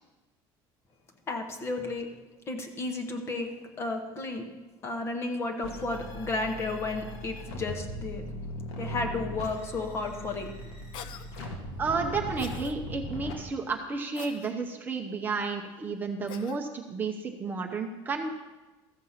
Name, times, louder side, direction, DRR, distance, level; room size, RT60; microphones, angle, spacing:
voice 1, 1.3-2.1 2.5-4.5 4.8-8.3 8.8-10.7, left 3 dB, 25° left, 5 dB, 1.0 m, -33 dB
sound 1, 5.6-13.3, equal, 75° left, 1.9 m, -39 dB
Cough, 10.9-11.3 12.4-12.7 14.2-14.5 16.3-16.6, left 9 dB, 50° left, 0.6 m, -43 dB
voice 2, 11.8-18.3, right 4 dB, 20° right, 3 dB, 0.7 m, -32 dB
14.0 x 7.2 x 5.7 m, 1.1 s
cardioid pair, 175°, 10 cm